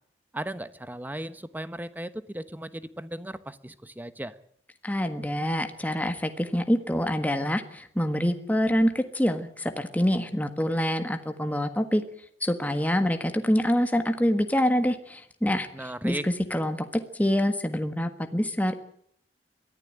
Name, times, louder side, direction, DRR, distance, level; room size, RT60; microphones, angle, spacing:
voice 1, 0.3-4.3 15.7-16.2, right 1 dB, 10° right, 14 dB, 1.0 m, -36 dB
voice 2, 4.8-12.0 12.4-18.8, equal, 10° left, 7 dB, 1.5 m, -26 dB
22.5 x 15.0 x 8.9 m, 0.67 s
head